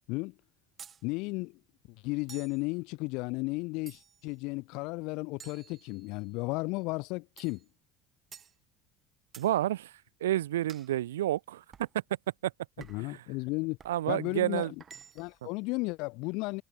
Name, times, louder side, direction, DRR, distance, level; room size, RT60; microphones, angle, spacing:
sound 1, 0.8-1.0 2.3-2.6 3.9-4.3 5.4-6.3 7.4-7.6 8.3-8.5 9.3-9.5 10.7-10.9 11.7-11.9 12.8-13.1 13.8-14.0 14.8-15.4, right 7 dB, 35° right, 3.1 m, -51 dB
voice 1, 1.0-1.6 2.0-7.6 12.9-13.8 14.1-14.7 15.1-16.6, left 25 dB, 55° left, 1.3 m, -34 dB
voice 2, 9.4-9.9 10.2-11.6 12.4-12.5 13.1-13.2 13.8-14.7, right 13 dB, 70° right, 1.8 m, -29 dB
figure-of-eight pair, 65°, 0 cm